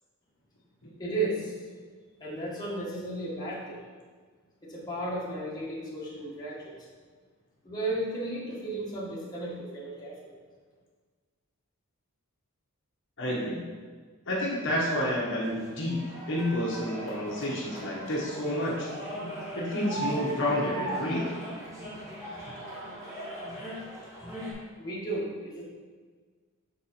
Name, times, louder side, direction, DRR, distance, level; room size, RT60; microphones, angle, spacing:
voice 1, 1.0-1.7 2.2-3.8 4.6-6.9 7.6-10.3 24.0-24.2 24.8-25.6, right 2 dB, 15° left, -7 dB, 1.4 m, -34 dB
voice 2, 13.2-13.6 14.3-18.9 19.5-21.3, left 1 dB, 55° left, -5 dB, 1.2 m, -29 dB
sound 1, 15.4-24.5, right 1 dB, 15° right, 1.6 m, -39 dB
6.0 x 4.3 x 4.2 m, 1.5 s
head